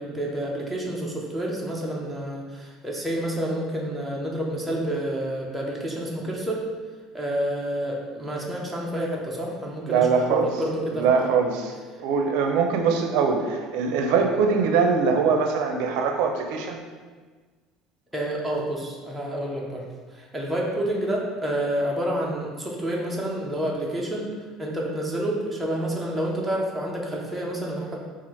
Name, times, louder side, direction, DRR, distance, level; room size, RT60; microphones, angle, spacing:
voice 1, 0.0-6.6 7.1-11.3 18.1-19.8 20.1-24.3 24.6-28.0, right 1 dB, 5° right, -3 dB, 0.5 m, -29 dB
voice 2, 9.9-10.5 10.9-11.7 12.0-16.8, right 5 dB, 70° right, 4 dB, 0.5 m, -22 dB
4.2 x 2.4 x 4.4 m, 1.4 s
cardioid pair, 165°, 0 cm